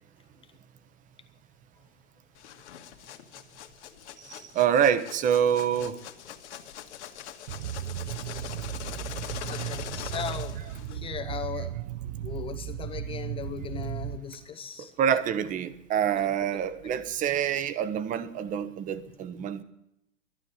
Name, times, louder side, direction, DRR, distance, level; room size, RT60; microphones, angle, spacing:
sound 1, 2.3-11.1, left 10 dB, 65° left, 1.8 m, -42 dB
voice 1, 4.5-5.9 15.0-19.6, right 9 dB, 20° right, 13 dB, 1.0 m, -26 dB
sound 2, 7.5-14.2, right 12 dB, 50° right, 0.8 m, -35 dB
voice 2, 9.5-10.6 10.9-11.8 12.2-15.2 16.1-16.5 16.8-17.0, left 7 dB, 15° left, 8 dB, 0.7 m, -38 dB
12.5 x 11.0 x 9.9 m, 0.84 s
hypercardioid pair, 125°, 37 cm